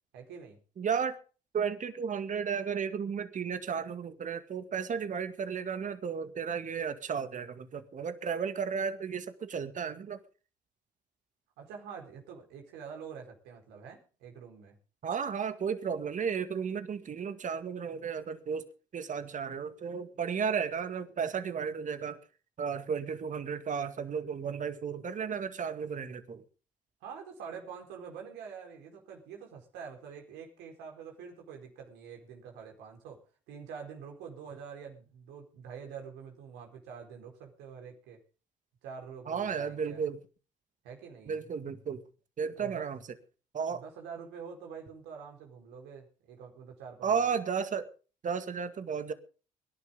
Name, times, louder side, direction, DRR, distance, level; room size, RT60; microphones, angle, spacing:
voice 1, 0.1-0.6 11.6-14.8 27.0-33.2 33.5-38.2 38.8-40.0 40.8-41.4 42.6-42.9 43.7-47.3, right 6 dB, 75° right, 4.4 m, -46 dB
voice 2, 0.8-1.2 1.5-10.2 15.0-22.2 22.6-26.4 39.3-40.2 41.3-42.0 42.4-43.0 43.5-43.8 47.0-47.9 48.2-49.1, right 6 dB, 45° right, 2.1 m, -33 dB
24.0 x 11.5 x 3.7 m
hypercardioid pair, 55°, 17 cm